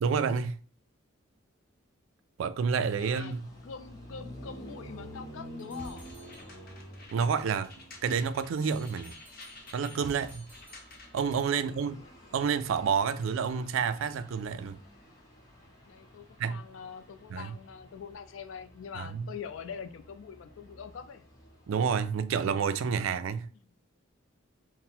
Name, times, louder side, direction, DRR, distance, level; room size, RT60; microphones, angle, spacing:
voice 1, 0.0-0.5 2.4-3.4 7.1-7.7 8.0-9.2 9.7-10.5 11.1-12.0 12.3-14.8 16.4-16.6 17.3-17.5 19.0-19.3 21.7-23.5, right 6 dB, 70° right, 0.3 m, -29 dB
sound 1, 2.9-22.5, equal, 20° left, 0.9 m, -50 dB
voice 2, 3.0-3.4 3.6-6.1 11.5-12.1 15.9-21.3, left 6 dB, 70° left, 0.4 m, -44 dB
sound 2, 5.6-6.9 8.6-11.6, right 1 dB, 10° right, 1.0 m, -56 dB
sound 3, 5.8-11.4, left 2 dB, 45° left, 0.8 m, -50 dB
3.8 x 2.1 x 4.2 m
head